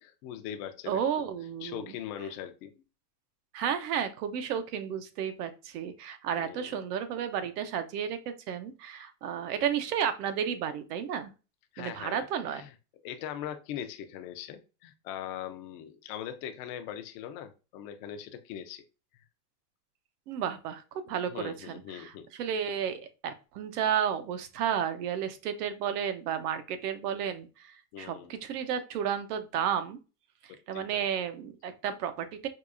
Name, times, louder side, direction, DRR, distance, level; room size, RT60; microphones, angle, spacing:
voice 1, 0.0-1.3 1.6-2.7 6.4-6.8 11.7-12.7 13.0-18.8 21.3-22.3 27.9-28.4 30.5-31.1, left 10 dB, 40° left, 8 dB, 0.4 m, -41 dB
voice 2, 0.9-1.9 3.5-11.3 11.8-12.6 20.3-20.8 21.1-22.1 22.4-27.7 28.0-30.0 30.4-32.5, right 8 dB, 80° right, 10 dB, 0.8 m, -32 dB
4.7 x 2.3 x 2.5 m, 0.32 s
supercardioid pair, 155°, 47 cm